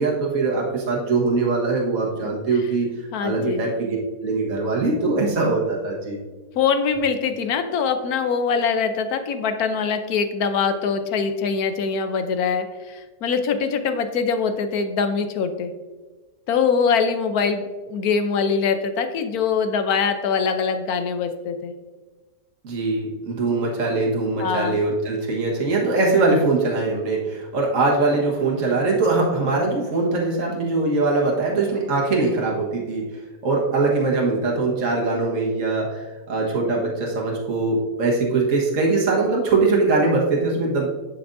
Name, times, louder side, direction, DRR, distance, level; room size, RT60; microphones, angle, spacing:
voice 1, 0.0-2.9 3.2-4.0 4.2-6.2 22.6-33.0 33.4-40.9, right 3 dB, 55° right, -2 dB, 1.7 m, -22 dB
voice 2, 3.1-3.6 6.6-15.7 16.5-21.7 24.4-24.8, left 5 dB, 70° left, 8 dB, 1.2 m, -23 dB
11.0 x 6.0 x 2.6 m, 1.3 s
omnidirectional pair, 1.7 m